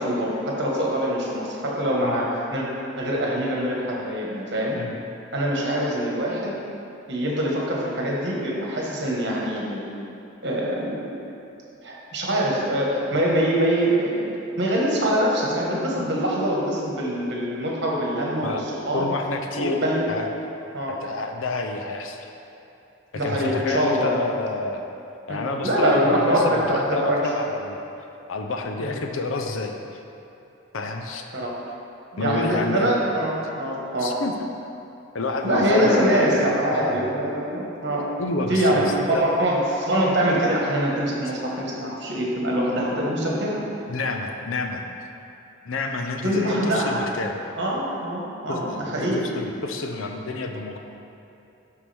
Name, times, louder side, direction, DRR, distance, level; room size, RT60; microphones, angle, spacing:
voice 1, 0.0-2.7 3.0-4.8 5.3-6.5 7.1-9.8 10.4-11.1 11.8-19.1 19.5-20.0 20.7-20.9 23.1-24.1 25.3-27.2 28.8-28.9 31.3-31.5 32.1-34.1 35.4-38.1 38.5-38.8 39.2-43.6 46.2-47.0 47.6-49.3, equal, 55° right, -3 dB, 1.4 m, -24 dB
voice 2, 18.9-19.8 20.1-20.4 20.9-22.3 23.2-24.8 25.3-27.9 28.3-30.0 30.7-31.2 32.2-32.9 34.0-34.3 35.1-36.3 36.7-37.0 38.2-39.3 43.9-44.9 45.7-47.4 48.5-50.8, left 3 dB, 80° left, 4 dB, 0.7 m, -29 dB
11.0 x 4.8 x 3.5 m, 2.9 s
head